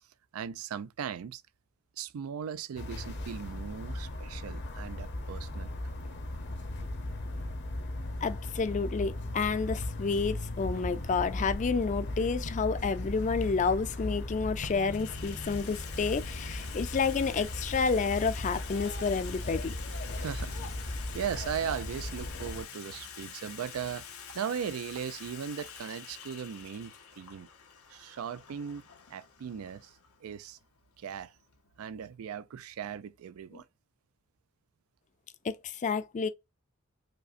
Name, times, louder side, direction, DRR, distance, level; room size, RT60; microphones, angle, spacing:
voice 1, 0.3-1.4 2.0-5.7 20.2-24.1 24.3-27.5 27.9-28.8 29.1-29.9 30.2-30.6 31.0-31.3 31.8-33.6, right 8 dB, 85° right, 0.4 m, -38 dB
sound 1, 2.8-22.6, left 1 dB, 55° left, 0.7 m, -37 dB
voice 2, 8.2-19.7 33.5-33.6 35.4-36.3, left 5 dB, 35° left, 0.4 m, -30 dB
Water tap faucet / Sink (filling or washing), 12.8-12.9 13.8-14.3 14.6-32.2, left 8 dB, 90° left, 0.7 m, -47 dB
5.0 x 2.1 x 2.5 m
head